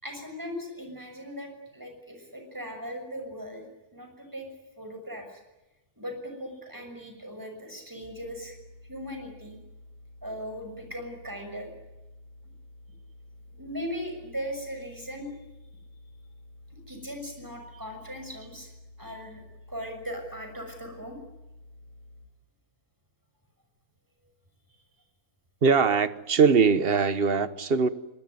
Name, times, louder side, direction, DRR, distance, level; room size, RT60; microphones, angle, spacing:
voice 1, 0.0-3.6 3.9-4.5 4.8-5.4 6.0-8.6 8.9-9.6 10.2-11.7 13.5-15.3 16.9-18.7 19.0-19.4 19.7-21.2, equal, 10° right, 5 dB, 6.4 m, -38 dB
sound 1, 8.0-22.2, left 2 dB, 30° left, 8.3 m, -51 dB
voice 2, 25.6-27.9, right 5 dB, 40° right, 13 dB, 1.2 m, -21 dB
25.0 x 20.5 x 9.5 m, 1.1 s
omnidirectional pair, 1.7 m